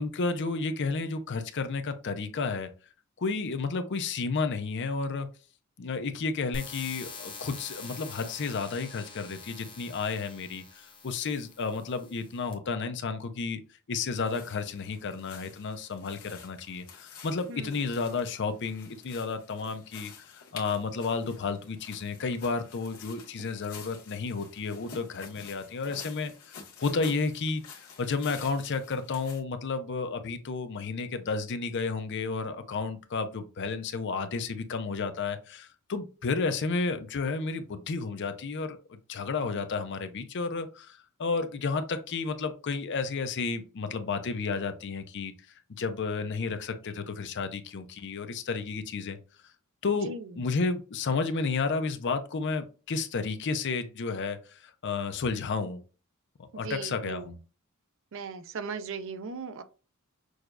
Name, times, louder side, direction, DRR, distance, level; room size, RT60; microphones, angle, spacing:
voice 1, 0.0-2.7 3.2-5.3 5.8-13.6 13.9-27.6 28.0-45.3 45.8-49.2 49.8-50.1 50.4-55.8 56.5-57.4, left 4 dB, 55° left, 0.5 m, -32 dB
sound 1, 6.5-12.5, left 4 dB, 25° left, 0.9 m, -45 dB
sound 2, 14.0-29.4, left 6 dB, 80° left, 1.2 m, -50 dB
voice 2, 17.5-17.8 50.0-50.4 56.5-57.4 58.1-59.6, right 4 dB, 60° right, 0.5 m, -38 dB
6.2 x 2.3 x 2.5 m
head